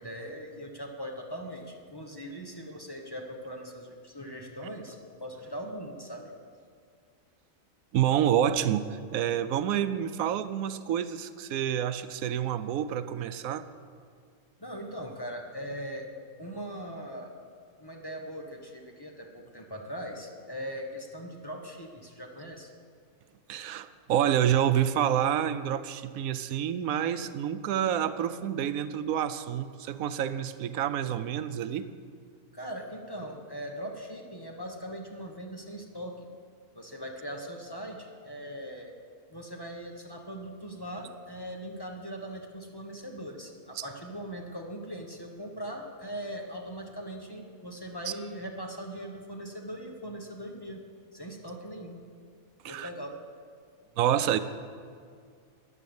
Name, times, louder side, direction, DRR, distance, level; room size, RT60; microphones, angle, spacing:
voice 1, 0.0-6.3 14.6-16.1 16.4-17.3 17.8-22.7 32.5-36.3 36.7-38.9 39.3-50.8 51.1-52.0 52.7-53.2, equal, 20° left, 1 dB, 1.2 m, -40 dB
voice 2, 7.9-13.7 23.5-31.9 43.8-43.9 52.6-52.9 54.0-54.4, right 10 dB, 85° right, 12 dB, 1.1 m, -28 dB
14.0 x 9.9 x 7.1 m, 2.1 s
omnidirectional pair, 1.4 m